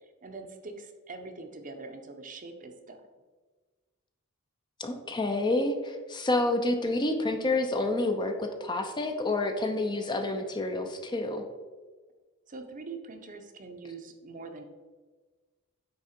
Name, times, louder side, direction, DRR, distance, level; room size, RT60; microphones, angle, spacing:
voice 1, 0.2-3.0 12.5-14.6, right 3 dB, 40° right, 5 dB, 0.7 m, -43 dB
voice 2, 4.8-11.4, left 2 dB, 20° left, 6 dB, 0.5 m, -29 dB
8.6 x 3.6 x 4.3 m, 1.4 s
head